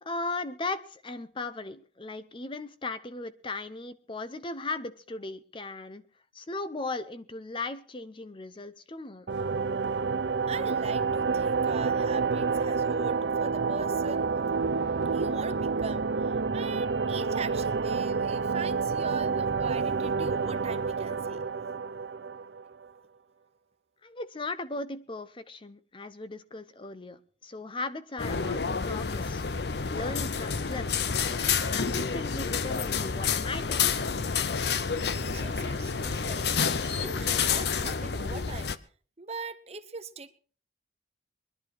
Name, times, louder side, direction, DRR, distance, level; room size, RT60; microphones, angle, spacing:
voice 1, 0.0-6.0 6.3-9.3 24.0-29.4 29.9-31.1 31.4-34.1, left 3 dB, 30° left, 0.7 m, -37 dB
sound 1, 9.3-22.8, right 5 dB, 80° right, 0.7 m, -28 dB
voice 2, 10.5-14.3 15.1-21.5 35.2-38.8 39.2-40.3, right 4 dB, 35° right, 0.9 m, -41 dB
sound 2, 28.2-38.8, left 6 dB, 65° left, 0.7 m, -29 dB
21.5 x 11.5 x 4.5 m
head